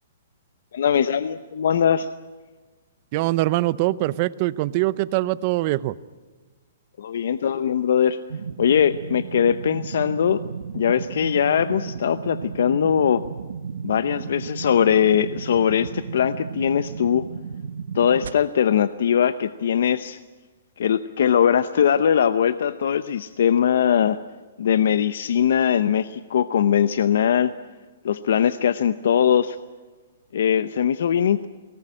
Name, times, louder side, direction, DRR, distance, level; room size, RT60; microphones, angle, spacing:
voice 1, 0.7-2.1 7.0-8.2 8.6-10.4 10.7-13.2 13.8-17.3 17.9-20.2 20.8-24.2 24.6-27.5 28.0-29.6 30.3-31.5, left 8 dB, 65° left, 14 dB, 0.8 m, -21 dB
voice 2, 3.1-5.9, right 17 dB, 35° right, 18 dB, 0.7 m, -23 dB
sound 1, 8.3-18.3, right 6 dB, 90° right, 1.3 m, -34 dB
23.0 x 18.5 x 10.0 m, 1.3 s
hypercardioid pair, 160°, 0 cm